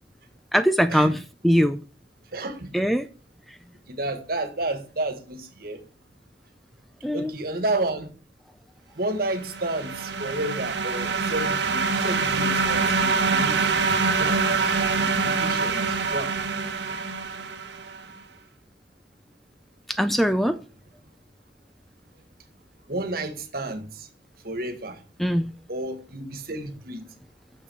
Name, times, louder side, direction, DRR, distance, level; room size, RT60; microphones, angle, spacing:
voice 1, 0.5-1.2 1.4-1.8 2.7-3.1 7.0-7.3 19.9-20.6 25.2-25.5, equal, ahead, 0.4 m, -21 dB
voice 2, 2.3-2.8 3.9-5.8 7.1-8.1 9.0-13.7 13.9-14.5 14.9-16.4 22.9-24.1 24.4-25.0 25.7-27.0, right 2 dB, 55° right, 1.6 m, -31 dB
sound 1, 9.4-18.0, right 4 dB, 70° right, 1.1 m, -25 dB
6.7 x 5.7 x 7.0 m
head